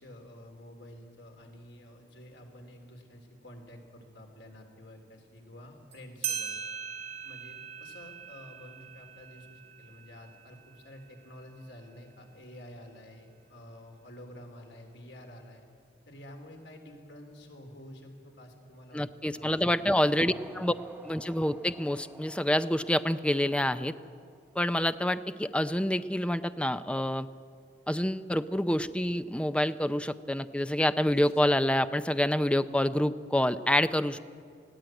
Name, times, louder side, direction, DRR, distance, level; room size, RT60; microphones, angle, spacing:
voice 1, 0.0-6.5 7.2-15.6 16.1-19.1 19.4-19.9 20.2-20.4 20.6-20.7, left 1 dB, 85° left, 3 dB, 3.5 m, -49 dB
sound 1, 5.9-6.0 6.2-11.3, right 7 dB, 40° right, 3.6 m, -40 dB
voice 2, 18.9-20.7 21.0-23.9 24.5-27.3 27.9-34.2, left 1 dB, 5° left, 12 dB, 0.6 m, -27 dB
sound 2, 20.2-24.8, right 1 dB, 10° right, 0.9 m, -53 dB
sound 3, 28.8-29.2 31.1-31.5, left 1 dB, 60° left, 2.3 m, -54 dB
20.0 x 16.0 x 9.0 m, 2.1 s
head